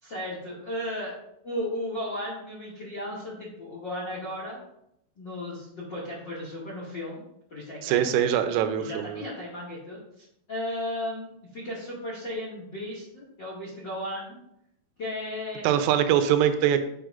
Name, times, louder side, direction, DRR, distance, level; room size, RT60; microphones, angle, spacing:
voice 1, 0.0-1.1 1.4-4.6 5.2-7.2 7.5-8.1 8.8-14.4 15.0-15.6, left 1 dB, 45° left, -6 dB, 1.5 m, -35 dB
voice 2, 7.8-9.2 15.6-16.8, right 10 dB, 90° right, 8 dB, 3.4 m, -23 dB
9.4 x 8.2 x 2.6 m, 0.76 s
omnidirectional pair, 5.8 m